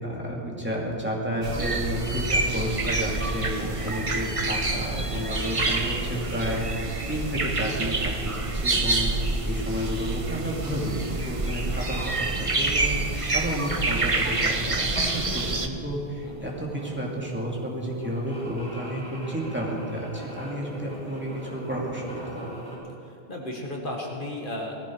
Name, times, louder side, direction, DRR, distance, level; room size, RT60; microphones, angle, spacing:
voice 1, 0.0-9.1 9.4-22.4, equal, 10° right, -3 dB, 2.7 m, -31 dB
sound 1, 1.4-15.7, right 2 dB, 30° right, 1.0 m, -27 dB
sound 2, 11.7-22.8, equal, 5° left, 4.9 m, -42 dB
voice 2, 16.2-16.6 23.1-24.8, left 1 dB, 50° left, 0 dB, 1.9 m, -34 dB
18.5 x 15.0 x 4.7 m, 2.7 s
omnidirectional pair, 1.1 m